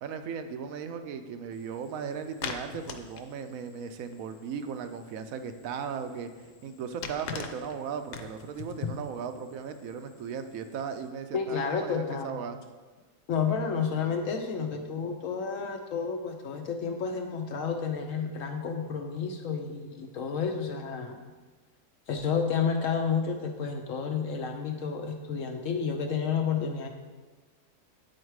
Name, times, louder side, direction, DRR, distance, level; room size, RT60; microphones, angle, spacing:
voice 1, 0.0-6.3 6.6-12.6, right 6 dB, 70° right, 8 dB, 0.9 m, -37 dB
sound 1, 1.5-11.1, left 6 dB, 80° left, 1.2 m, -43 dB
voice 2, 11.3-12.3 13.3-21.2 22.1-26.9, left 6 dB, 65° left, 4 dB, 0.9 m, -30 dB
8.7 x 4.4 x 4.7 m, 1.3 s
omnidirectional pair, 1.7 m